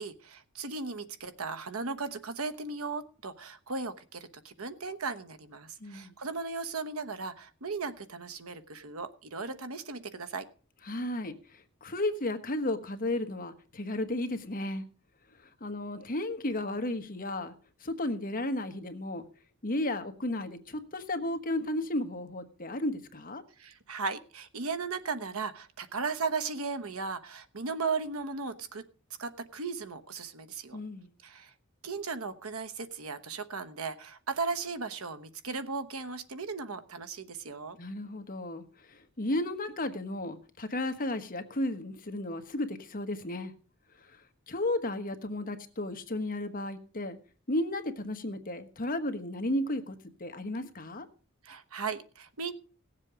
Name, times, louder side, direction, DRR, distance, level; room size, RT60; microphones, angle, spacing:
voice 1, 0.0-10.5 23.6-28.9 29.2-30.8 31.2-31.5 31.8-37.8 51.4-52.5, right 4 dB, 90° right, 12 dB, 1.1 m, -36 dB
voice 2, 5.8-6.1 10.8-11.4 11.8-14.8 15.6-17.5 17.8-19.3 19.6-23.4 30.7-31.1 37.8-43.5 44.5-47.2 47.5-51.1, left 1 dB, 40° left, 8 dB, 1.3 m, -33 dB
18.0 x 7.5 x 5.0 m, 0.39 s
head